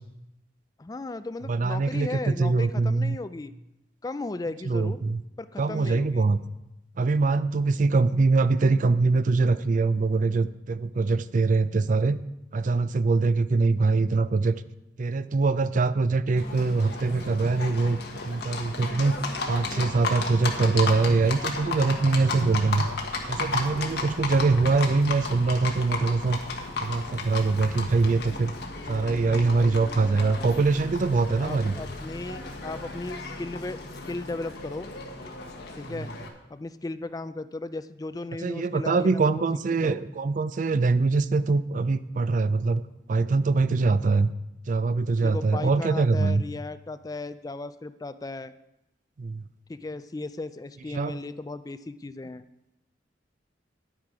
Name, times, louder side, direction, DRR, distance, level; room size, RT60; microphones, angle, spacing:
voice 1, 0.8-3.5 4.0-5.0 5.4-6.3 28.8-30.6 31.4-34.9 35.7-36.1 36.5-39.5 39.8-40.0 45.2-48.5 49.7-52.4, left 2 dB, 20° left, 12 dB, 0.3 m, -36 dB
voice 2, 1.5-3.2 4.7-5.2 5.6-6.4 7.0-12.2 12.5-14.6 15.0-18.0 18.2-19.2 19.5-22.9 23.3-26.4 26.8-28.5 28.9-31.7 35.9-36.0 38.4-42.8 43.1-44.3 44.7-46.4 49.2-49.4 50.9-51.2, right 3 dB, 45° right, 14 dB, 0.4 m, -23 dB
Livestock farm animals working animals, 16.4-36.3, left 3 dB, 65° left, 1.4 m, -34 dB
10.5 x 8.8 x 4.7 m, 0.89 s
head